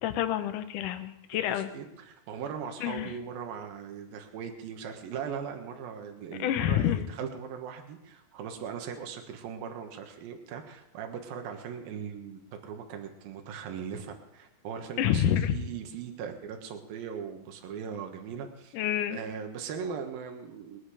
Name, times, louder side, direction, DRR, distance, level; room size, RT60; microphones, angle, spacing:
voice 1, 0.0-1.7 2.8-3.1 6.4-7.0 15.0-15.6 18.7-19.2, left 10 dB, 70° left, 9 dB, 2.3 m, -28 dB
voice 2, 1.3-15.2 15.5-18.8 19.1-20.8, right 7 dB, 75° right, 4 dB, 3.2 m, -39 dB
21.5 x 9.8 x 4.9 m, 0.84 s
omnidirectional pair, 4.2 m